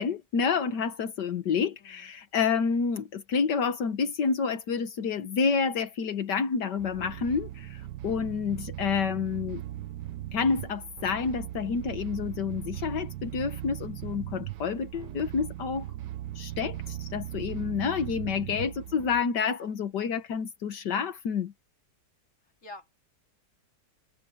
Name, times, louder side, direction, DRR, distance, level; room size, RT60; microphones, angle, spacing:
voice 1, 0.0-9.6 10.3-15.9 16.4-21.5, left 6 dB, 80° left, 1.9 m, -29 dB
voice 2, 1.8-2.1 18.3-18.6 22.6-23.0, left 2 dB, 45° left, 3.0 m, -48 dB
sound 1, 6.8-19.2, right 14 dB, 85° right, 1.3 m, -39 dB
omnidirectional pair, 1.8 m